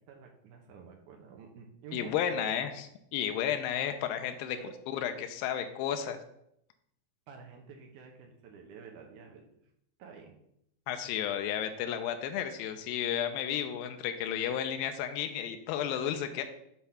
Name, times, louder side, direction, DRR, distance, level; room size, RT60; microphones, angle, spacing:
voice 1, 0.1-2.7 4.5-4.7 7.3-9.4 10.0-10.3, right 5 dB, 70° right, 2 dB, 2.1 m, -48 dB
voice 2, 1.9-2.9 3.1-4.6 4.9-6.2 10.9-16.4, left 9 dB, 85° left, 7 dB, 2.4 m, -32 dB
7.6 x 3.5 x 5.6 m, 0.76 s
omnidirectional pair, 4.1 m